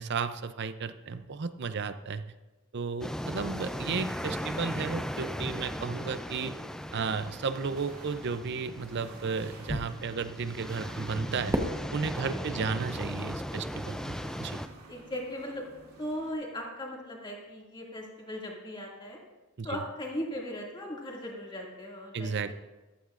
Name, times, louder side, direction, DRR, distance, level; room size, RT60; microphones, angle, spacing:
voice 1, 0.0-2.2 2.7-6.6 6.9-11.6 11.9-14.6 19.6-19.8 22.1-22.5, right 5 dB, 50° right, 12 dB, 0.6 m, -33 dB
sound 1, 3.0-14.7, equal, 5° left, 0.4 m, -37 dB
sound 2, 7.0-16.3, right 2 dB, 85° right, 2.6 m, -53 dB
Fireworks, 11.5-13.8, equal, 15° right, 1.0 m, -36 dB
voice 2, 12.2-12.6 14.9-15.7 16.0-19.2 19.6-22.3, left 1 dB, 20° left, -2 dB, 2.2 m, -38 dB
14.5 x 12.5 x 2.5 m, 1.1 s
head